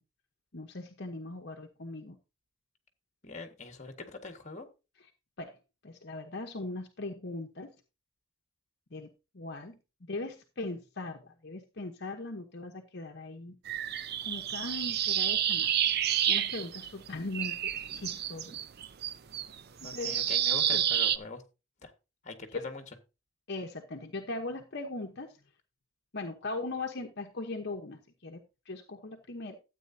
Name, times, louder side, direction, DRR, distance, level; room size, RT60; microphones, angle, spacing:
voice 1, 0.5-2.2 5.4-5.6 5.8-7.7 8.9-9.7 10.0-13.6 14.2-15.7 16.3-18.6 19.8-20.2 20.7-20.8 22.5-22.7 23.5-25.4 26.1-29.6, left 2 dB, 55° left, 3 dB, 1.0 m, -39 dB
voice 2, 3.2-4.7 19.8-21.4 21.8-21.9 22.2-22.8, left 3 dB, 35° left, 7 dB, 1.6 m, -43 dB
sound 1, 13.7-17.1 17.3-21.2, right 10 dB, 50° right, 0.5 m, -29 dB
13.0 x 8.6 x 2.7 m, 0.28 s
head